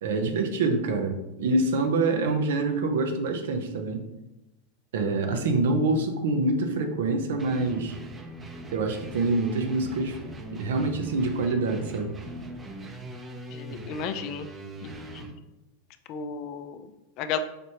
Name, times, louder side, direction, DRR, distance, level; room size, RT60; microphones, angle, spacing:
voice 1, 0.0-4.0 4.9-8.0 8.7-10.2 10.5-12.1 13.7-13.8, right 3 dB, 70° right, 5 dB, 0.6 m, -26 dB
sound 1, 7.4-15.3, right 1 dB, 20° right, 0.6 m, -41 dB
voice 2, 13.5-14.5 14.8-15.4 16.1-17.4, left 7 dB, 50° left, 9 dB, 0.4 m, -34 dB
5.0 x 3.1 x 2.8 m, 0.94 s
hypercardioid pair, 90°, 0 cm